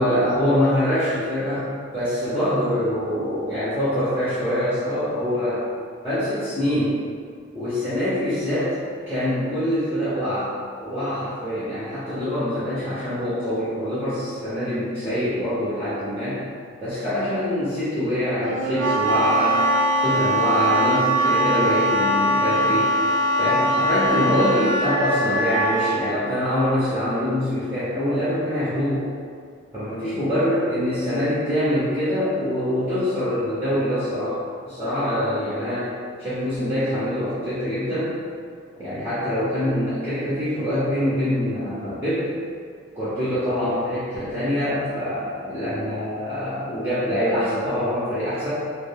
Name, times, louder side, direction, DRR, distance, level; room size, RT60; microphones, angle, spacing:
voice 1, 0.0-5.6 6.0-7.0 7.5-8.7 9.1-10.5 10.8-16.4 16.8-19.7 20.0-22.9 23.4-29.0 29.7-34.4 34.6-35.9 36.2-38.2 38.8-42.3 42.9-48.5, equal, 10° right, -13 dB, 0.6 m, -24 dB
Wind instrument woodwind instrument, 18.4-26.0, right 1 dB, 65° right, 0.3 m, -21 dB
2.3 x 2.1 x 3.3 m, 2.1 s
head